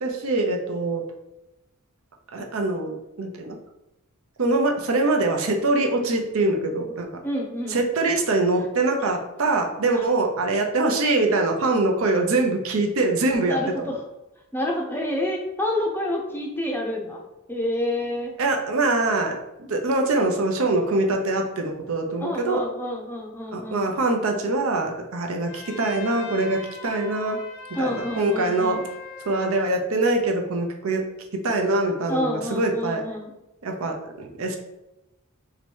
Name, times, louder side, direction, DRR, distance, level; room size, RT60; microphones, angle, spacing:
voice 1, 0.0-1.0 2.3-3.6 4.4-7.1 7.7-13.9 18.4-22.6 23.5-27.4 27.8-28.8 29.3-31.0 31.4-33.0 33.6-34.6, right 2 dB, 70° right, 3 dB, 0.6 m, -23 dB
voice 2, 7.2-7.8 9.9-10.0 13.5-14.0 14.5-17.2 17.5-18.4 22.2-23.9 27.7-28.8 32.1-33.3, left 1 dB, 10° left, -1 dB, 0.6 m, -28 dB
Trumpet, 25.4-29.7, left 4 dB, 60° left, 0.8 m, -41 dB
3.1 x 2.9 x 4.5 m, 0.95 s
head